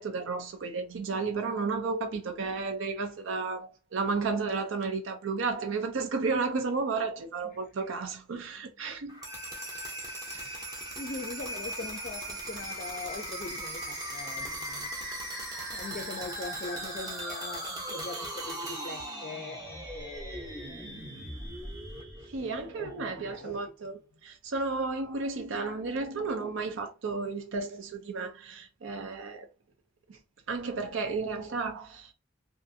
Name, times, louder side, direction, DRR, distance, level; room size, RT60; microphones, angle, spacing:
voice 1, 0.0-9.2 10.3-10.7 22.3-29.5 30.1-30.2 30.5-32.1, right 4 dB, 85° right, 0.5 m, -33 dB
sound 1, 9.1-22.9, right 1 dB, 20° right, 0.6 m, -38 dB
voice 2, 11.0-14.9 15.7-21.3 22.3-23.6, left 3 dB, 45° left, 0.4 m, -42 dB
2.5 x 2.4 x 2.6 m
head